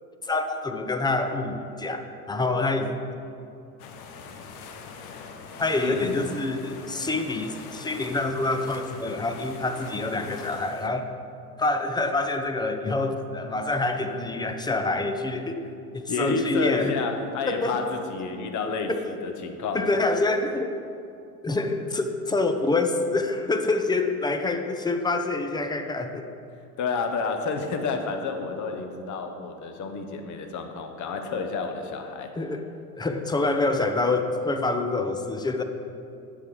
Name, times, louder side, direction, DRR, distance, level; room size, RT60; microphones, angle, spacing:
voice 1, 0.2-3.2 5.6-11.1 11.6-16.9 17.5-17.8 18.9-19.0 19.7-20.8 21.4-26.3 32.4-32.6 33.0-35.6, left 2 dB, 10° left, 6 dB, 0.6 m, -26 dB
sound 1, 3.8-10.9, left 5 dB, 65° left, 1.0 m, -42 dB
voice 2, 5.8-6.2 16.1-20.1 26.8-32.4, left 4 dB, 35° left, 5 dB, 1.2 m, -30 dB
9.5 x 7.6 x 4.8 m, 2.6 s
figure-of-eight pair, 75°, 48 cm